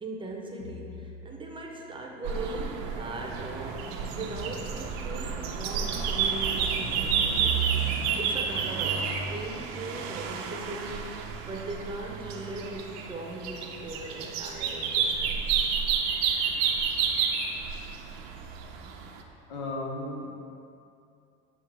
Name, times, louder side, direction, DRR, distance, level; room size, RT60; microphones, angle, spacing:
voice 1, 0.0-7.6 8.1-11.2 11.4-15.7, right 2 dB, 15° right, 0 dB, 0.7 m, -39 dB
sound 1, 0.6-3.3, left 5 dB, 55° left, 1.4 m, -49 dB
sound 2, 2.2-19.2, right 6 dB, 70° right, 0.6 m, -30 dB
voice 2, 19.5-20.4, left 2 dB, 80° left, 0 dB, 0.9 m, -35 dB
7.3 x 2.4 x 5.3 m, 2.6 s
supercardioid pair, 105°, 29 cm